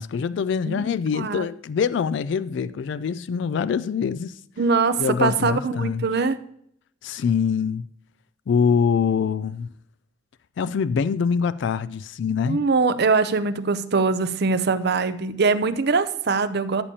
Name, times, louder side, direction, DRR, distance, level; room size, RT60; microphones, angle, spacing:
voice 1, 0.0-4.3 5.0-6.0 7.0-7.9 8.5-9.7 10.6-12.6, left 6 dB, 65° left, 0.3 m, -24 dB
voice 2, 1.1-1.5 4.6-6.4 12.5-16.8, right 4 dB, 60° right, 0.6 m, -22 dB
13.5 x 6.9 x 2.8 m
head